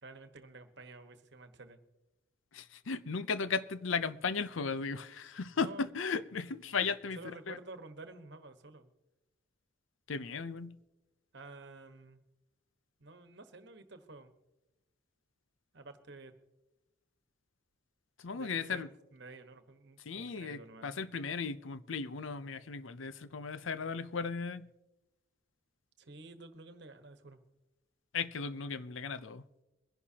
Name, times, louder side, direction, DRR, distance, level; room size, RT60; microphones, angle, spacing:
voice 1, 0.0-1.8 5.6-5.9 7.1-8.9 11.3-12.2 13.0-14.3 15.7-16.3 18.3-21.0 26.0-27.4, right 3 dB, 60° right, 1.3 m, -51 dB
voice 2, 2.5-7.6 10.1-10.8 18.2-18.9 20.1-24.7 28.1-29.4, left 5 dB, 80° left, 0.6 m, -36 dB
23.0 x 11.0 x 2.9 m
head